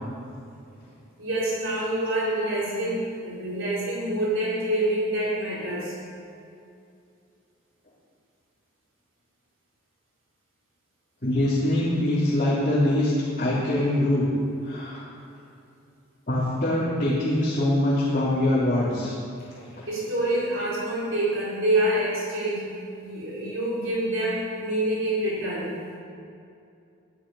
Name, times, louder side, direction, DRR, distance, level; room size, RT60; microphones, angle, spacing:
voice 1, 1.2-6.0 19.9-22.7 23.0-25.8, right 1 dB, 75° right, -7 dB, 4.3 m, -26 dB
voice 2, 11.2-13.1 13.4-14.3 14.6-15.0 16.3-19.1, left 1 dB, 40° left, -10 dB, 3.4 m, -23 dB
15.5 x 12.5 x 5.6 m, 2.5 s
head